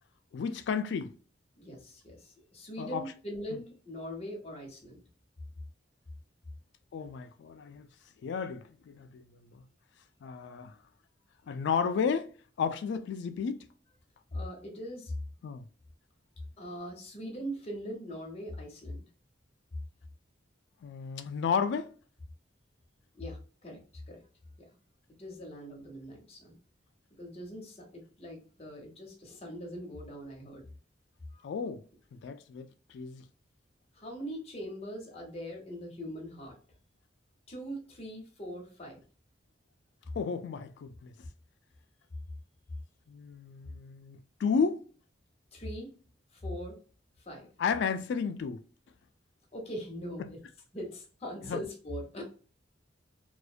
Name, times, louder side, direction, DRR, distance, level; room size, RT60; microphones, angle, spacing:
voice 1, 0.3-1.1 2.8-3.1 6.9-7.9 8.2-9.6 10.2-10.8 11.5-12.3 12.6-13.6 15.4-15.7 20.8-21.9 31.4-31.8 32.2-33.2 40.1-41.1 43.1-44.9 47.6-48.6 50.2-50.3 51.5-51.6, left 6 dB, 65° left, 0.3 m, -33 dB
voice 2, 1.6-5.0 14.3-15.1 16.6-19.0 23.1-23.8 24.1-24.3 24.6-24.7 25.2-26.6 27.2-30.7 31.3-31.7 33.9-36.6 37.5-39.0 45.5-45.9 46.3-46.8 47.2-47.5 49.5-50.4 50.7-52.2, equal, 35° left, 0.8 m, -41 dB
2.4 x 2.1 x 2.4 m
head